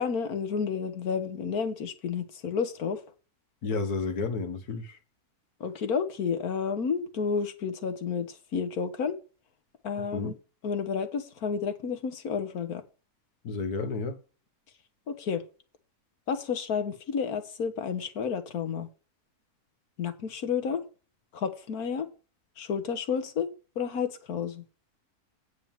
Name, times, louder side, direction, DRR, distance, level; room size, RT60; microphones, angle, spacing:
voice 1, 0.0-3.0 5.6-8.3 8.5-9.2 9.8-10.3 10.6-12.8 15.1-15.4 16.3-18.9 20.0-20.8 21.3-22.1 22.6-23.5 23.8-24.6, left 6 dB, 70° left, 1.6 m, -31 dB
voice 2, 3.6-5.0 10.0-10.3 13.4-14.2, left 4 dB, 85° left, 1.8 m, -31 dB
8.7 x 4.7 x 7.4 m
omnidirectional pair, 1.6 m